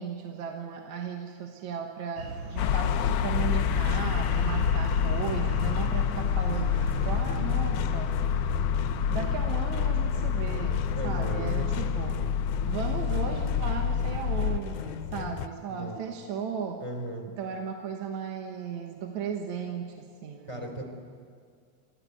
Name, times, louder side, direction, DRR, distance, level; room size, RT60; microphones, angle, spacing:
voice 1, 0.0-8.1 9.1-12.3 12.7-16.8 17.4-20.8, right 6 dB, 70° right, 3 dB, 2.6 m, -36 dB
sound 1, 2.2-7.2, right 1 dB, 40° right, 3.5 m, -38 dB
sound 2, 2.6-14.6, left 7 dB, 75° left, 1.4 m, -27 dB
sound 3, 2.8-15.5, left 9 dB, 90° left, 2.3 m, -37 dB
voice 2, 10.9-11.6 15.7-16.0 16.8-17.3 20.5-20.8, right 1 dB, 10° right, 2 dB, 3.5 m, -36 dB
29.5 x 15.0 x 9.5 m, 2.1 s
omnidirectional pair, 3.5 m